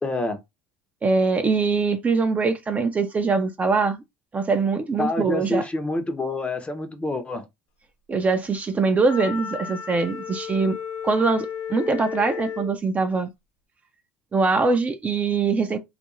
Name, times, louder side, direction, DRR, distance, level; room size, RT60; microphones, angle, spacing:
voice 1, 0.0-0.4 5.0-7.5, left 2 dB, 20° left, 0.7 m, -27 dB
voice 2, 1.0-4.0 4.3-5.7 8.1-10.8 11.0-13.3 14.3-15.8, right 4 dB, 25° right, 0.5 m, -22 dB
Wind instrument woodwind instrument, 9.0-12.8, left 8 dB, 75° left, 0.6 m, -33 dB
2.4 x 2.1 x 3.0 m
hypercardioid pair, 85°, 6 cm